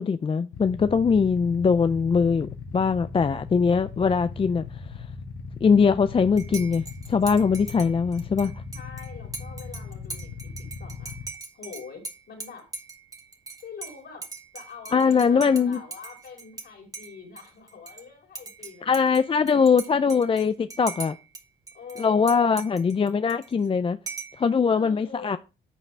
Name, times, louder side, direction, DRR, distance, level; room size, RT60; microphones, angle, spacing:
voice 1, 0.0-4.6 5.6-8.5 14.9-15.8 18.8-21.2 22.0-24.0 24.4-25.4, left 5 dB, 25° left, 0.5 m, -22 dB
Motorcycle / Idling, 0.5-11.2, left 5 dB, 80° left, 2.0 m, -39 dB
Dishes pots and pans / Cutlery silverware / Chink clink, 6.4-16.7 16.9-18.0 18.3-21.4 21.7-23.7 24.1-24.4, right 3 dB, 15° right, 1.6 m, -41 dB
voice 2, 8.7-11.1 11.5-12.7 13.6-14.3 14.5-19.0 21.7-22.5 24.7-25.3, left 6 dB, 60° left, 4.7 m, -44 dB
11.0 x 6.6 x 3.3 m
cardioid pair, 90°, 20 cm